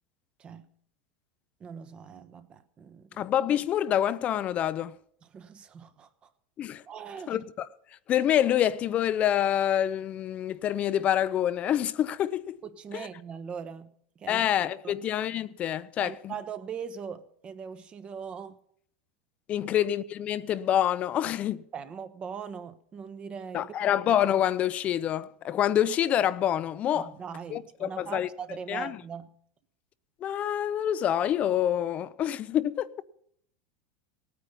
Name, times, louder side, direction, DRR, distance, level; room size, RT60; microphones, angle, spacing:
voice 1, 0.4-0.7 1.6-3.2 5.2-6.3 6.8-7.4 12.6-14.5 14.8-15.0 16.0-18.6 19.6-19.7 21.7-23.9 26.9-29.3, right 7 dB, 30° right, 1.0 m, -41 dB
voice 2, 3.2-4.9 6.6-6.8 7.3-7.7 8.1-12.6 12.9-13.1 14.3-16.3 19.5-21.6 23.5-27.1 27.5-28.3 28.7-29.0 30.2-32.9, left 10 dB, 35° left, 0.6 m, -27 dB
18.0 x 9.5 x 5.4 m
supercardioid pair, 125°, 4 cm